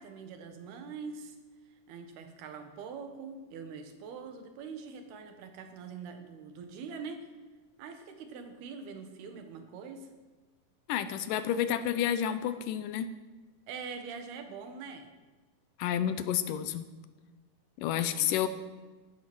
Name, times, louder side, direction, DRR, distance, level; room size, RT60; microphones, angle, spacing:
voice 1, 0.0-1.4 1.7-7.3 7.8-10.1 13.7-15.1 18.0-18.5, right 5 dB, 80° right, 6 dB, 3.5 m, -44 dB
voice 2, 10.9-13.1 15.8-16.9 17.8-18.5, left 10 dB, 75° left, 12 dB, 2.0 m, -30 dB
15.0 x 12.5 x 6.2 m, 1.3 s
omnidirectional pair, 4.5 m